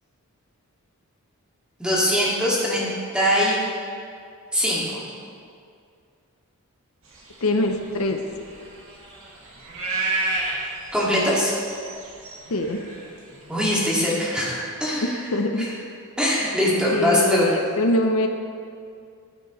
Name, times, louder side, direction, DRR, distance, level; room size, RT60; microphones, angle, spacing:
voice 1, 1.8-3.5 4.5-5.0 10.9-11.5 13.5-15.2 16.2-17.5, equal, 5° right, -7 dB, 2.1 m, -22 dB
sound 1, 7.1-14.0, right 2 dB, 65° right, 2.1 m, -31 dB
voice 2, 7.4-8.2 12.5-12.8 15.0-15.7 16.9-18.3, left 1 dB, 70° left, 5 dB, 0.6 m, -23 dB
14.0 x 9.0 x 3.1 m, 2.3 s
head